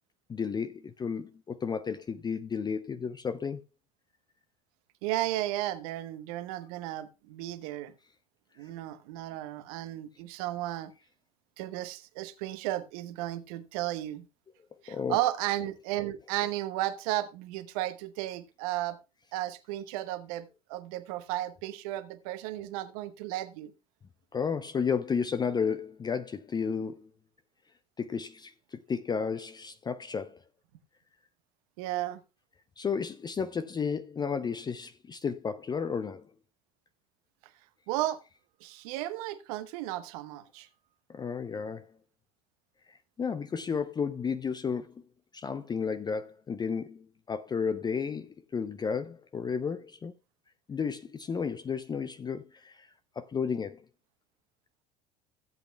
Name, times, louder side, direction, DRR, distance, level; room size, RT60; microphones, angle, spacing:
voice 1, 0.3-3.6 14.9-15.2 24.3-27.1 28.0-30.4 32.8-36.3 41.1-41.9 42.9-45.0 45.3-50.1 50.7-52.9 53.2-53.8, left 6 dB, 20° left, 0.5 m, -33 dB
voice 2, 5.0-7.9 8.6-10.9 11.6-14.2 14.8-19.0 19.3-23.7 31.8-32.2 37.9-38.2 38.6-40.7, right 15 dB, 60° right, 1.0 m, -34 dB
15.5 x 8.1 x 2.2 m
figure-of-eight pair, 70°, 21 cm